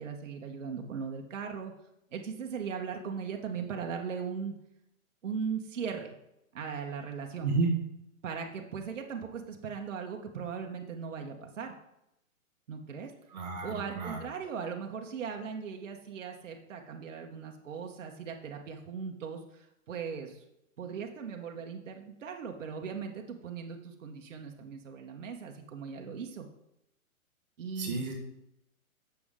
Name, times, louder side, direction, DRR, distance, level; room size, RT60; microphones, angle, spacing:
voice 1, 0.0-1.7 2.1-4.5 5.2-6.1 6.5-7.5 8.2-11.7 12.7-13.1 13.6-19.4 19.9-20.4 20.8-26.4 27.6-28.0, right 6 dB, 60° right, 2 dB, 1.2 m, -38 dB
voice 2, 7.4-7.7 13.3-14.2 27.8-28.1, right 3 dB, 30° right, 1 dB, 1.1 m, -31 dB
8.2 x 6.9 x 3.7 m, 0.83 s
hypercardioid pair, 175°, 43 cm